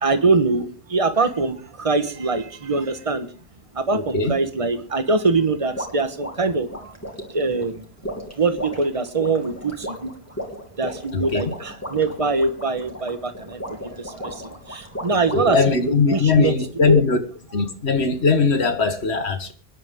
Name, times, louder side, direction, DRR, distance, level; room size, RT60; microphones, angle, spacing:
voice 1, 0.0-3.3 3.7-6.9 7.3-7.9 8.4-10.1 10.8-15.6 15.9-16.5 16.9-17.0, right 3 dB, 30° right, 1.4 m, -23 dB
voice 2, 3.9-4.3 11.1-11.5 15.3-17.2 17.5-19.5, left 4 dB, 90° left, 1.9 m, -20 dB
sound 1, 5.8-15.7, equal, 15° left, 2.8 m, -35 dB
24.5 x 10.5 x 3.7 m
omnidirectional pair, 1.1 m